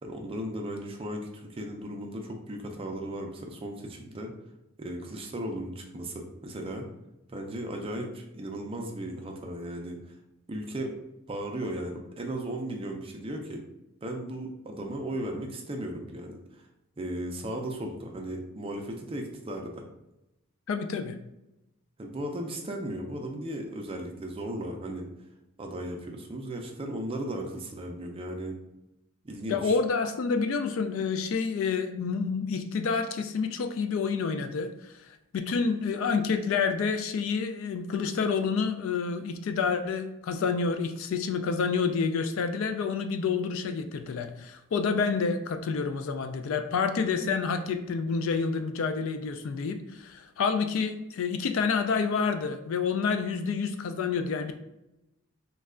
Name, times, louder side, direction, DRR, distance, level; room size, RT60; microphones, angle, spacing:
voice 1, 0.0-4.3 4.8-6.9 7.3-10.0 10.5-10.9 11.3-13.6 14.0-16.6 17.0-19.8 22.0-25.1 25.6-28.6 29.2-29.7, right 1 dB, 25° right, 2 dB, 0.4 m, -36 dB
voice 2, 20.7-21.2 29.5-54.5, left 5 dB, 60° left, 7 dB, 0.3 m, -28 dB
3.2 x 2.2 x 3.6 m, 0.90 s
head